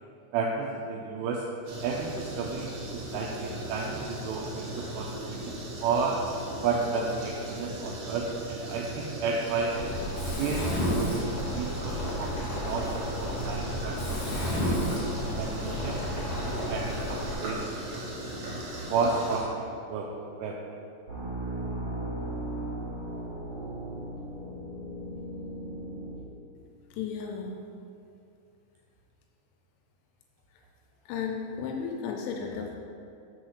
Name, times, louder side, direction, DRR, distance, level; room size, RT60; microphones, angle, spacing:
voice 1, 0.3-1.4 1.8-6.2 6.6-9.7 10.4-10.7 10.9-14.2 14.7-14.8 15.2-18.1 18.9-20.1 20.4-20.6, right 4 dB, 85° right, -2 dB, 2.5 m, -32 dB
sound 1, 1.6-19.4, right 1 dB, 65° right, 1.9 m, -38 dB
Mechanisms, 9.7-17.3, equal, 55° left, 2.7 m, -32 dB
sound 2, 21.1-26.1, right 1 dB, 50° right, 2.0 m, -36 dB
voice 2, 26.9-27.5 30.5-30.6 31.1-32.8, left 6 dB, 85° left, 1 dB, 2.9 m, -34 dB
6.4 x 4.2 x 6.3 m, 2.6 s
omnidirectional pair, 5.3 m